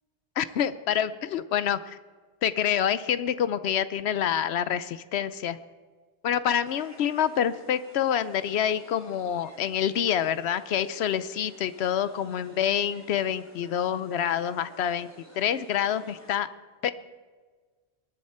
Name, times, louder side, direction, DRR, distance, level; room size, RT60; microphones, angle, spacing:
voice 1, 0.4-2.0 2.4-5.6 6.2-16.5 16.8-16.9, left 9 dB, 85° left, 14 dB, 0.9 m, -27 dB
sound 1, 6.6-16.4, right 1 dB, 15° left, 2.9 m, -53 dB
21.0 x 11.0 x 4.3 m, 1.4 s
omnidirectional pair, 1.1 m